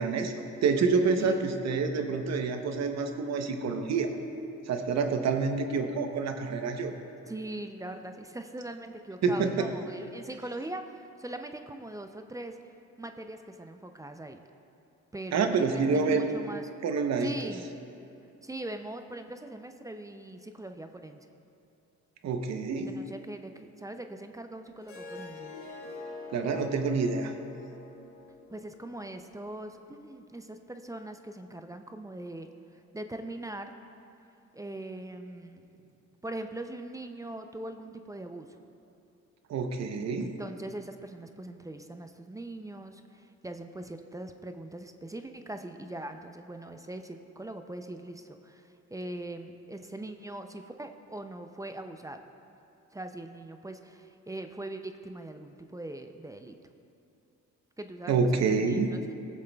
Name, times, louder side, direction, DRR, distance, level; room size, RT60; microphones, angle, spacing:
voice 1, 0.0-4.1 4.7-6.9 9.2-9.7 15.3-16.3 16.8-17.5 22.2-23.0 26.3-27.3 39.5-40.3 58.1-58.9, right 4 dB, 60° right, 6 dB, 0.8 m, -27 dB
voice 2, 1.2-1.6 7.3-12.6 13.0-14.4 15.1-16.7 17.2-17.7 18.4-21.3 22.9-25.6 28.5-33.7 34.5-35.6 36.2-38.5 40.2-52.2 52.9-56.6 57.8-59.0, right 1 dB, 10° right, 6 dB, 0.4 m, -41 dB
Harp, 24.8-30.0, left 3 dB, 80° left, 1.6 m, -45 dB
17.5 x 7.3 x 2.3 m, 2.7 s
cardioid pair, 90°, 30 cm